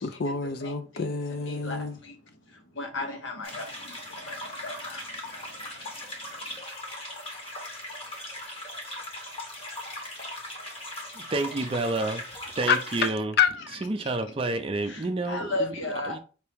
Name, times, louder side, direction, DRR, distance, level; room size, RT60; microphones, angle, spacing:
voice 1, 0.0-2.0 12.7-12.8 13.4-13.8, left 6 dB, 50° left, 0.5 m, -27 dB
voice 2, 0.6-1.1 1.4-2.2 2.5-5.9 14.0-14.1 14.8-16.2, left 2 dB, 75° left, 1.0 m, -36 dB
sound 1, 3.4-13.1, left 1 dB, 30° left, 1.0 m, -39 dB
voice 3, 11.1-12.2 12.5-13.3 13.8-15.7 16.1-16.2, right 2 dB, 30° right, 0.4 m, -29 dB
4.5 x 2.9 x 3.4 m
head